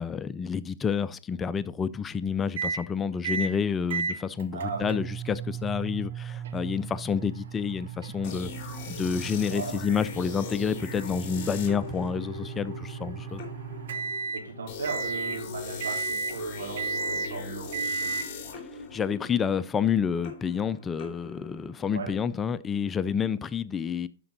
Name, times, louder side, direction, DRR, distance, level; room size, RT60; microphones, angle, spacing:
voice 1, 0.0-8.5 8.9-13.4 18.9-24.1, left 6 dB, 15° left, 0.3 m, -29 dB
sound 1, 2.6-2.8 3.2-3.5 3.9-14.4 14.8-15.4 15.8-16.4 16.8-17.3 17.7-18.3, right 5 dB, 60° right, 1.0 m, -35 dB
voice 2, 4.5-5.0 9.5-9.8 14.3-18.2 21.9-22.1, right 5 dB, 80° right, 3.9 m, -36 dB
sound 2, 8.2-22.0, left 5 dB, 30° left, 2.7 m, -41 dB
12.0 x 5.2 x 3.9 m
hypercardioid pair, 145°, 0 cm